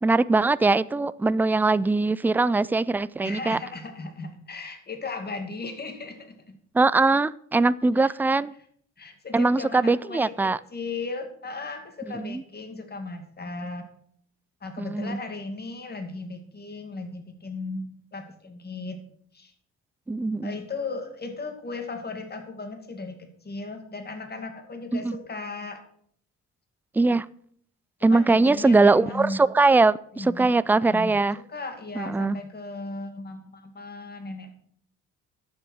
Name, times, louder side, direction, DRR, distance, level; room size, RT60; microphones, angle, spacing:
voice 1, 0.0-3.6 6.7-8.5 9.3-10.6 12.1-12.4 14.8-15.2 20.1-20.5 24.9-25.2 26.9-27.3 28.0-31.4 31.9-32.4, right 3 dB, 5° right, 0.3 m, -21 dB
voice 2, 3.2-6.6 8.0-8.1 9.0-13.9 14.6-19.0 19.3-19.5 20.4-25.8 28.1-29.4 30.2-31.2 31.5-34.5, left 3 dB, 35° left, 2.3 m, -36 dB
11.0 x 7.2 x 6.3 m
cardioid pair, 90°, 30 cm